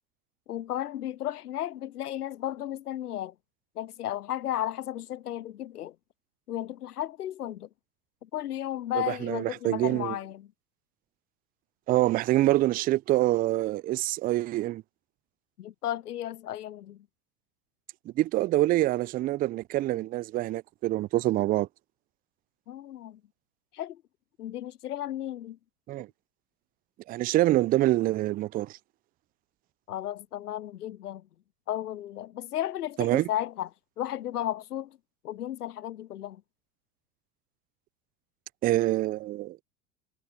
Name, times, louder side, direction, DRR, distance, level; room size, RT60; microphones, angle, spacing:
voice 1, 0.5-3.3 3.8-6.0 6.5-7.7 8.2-10.5 15.6-17.1 22.7-23.2 23.7-24.0 24.4-25.6 29.9-31.3 31.7-33.7 34.0-35.0 35.2-36.4, left 12 dB, 80° left, 0.7 m, -34 dB
voice 2, 8.9-10.2 11.9-14.8 18.2-21.7 25.9-26.1 27.1-28.8 33.0-33.3 38.6-39.6, right 16 dB, 20° right, 0.4 m, -26 dB
hypercardioid pair, 85°, 46 cm